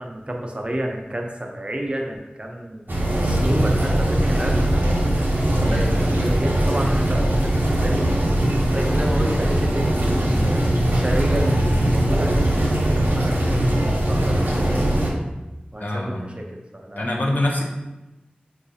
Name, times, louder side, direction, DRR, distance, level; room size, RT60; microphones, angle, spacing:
voice 1, 0.0-2.9 3.2-4.8 5.5-8.1 8.7-14.9 15.7-17.0, right 1 dB, 35° right, 1 dB, 0.5 m, -30 dB
sound 1, 2.9-15.1, right 1 dB, 80° right, 0.7 m, -20 dB
voice 2, 15.8-16.3 17.0-17.7, left 1 dB, 60° left, -1 dB, 0.6 m, -25 dB
4.7 x 2.4 x 2.6 m, 1.0 s
wide cardioid pair, 55°, 3 cm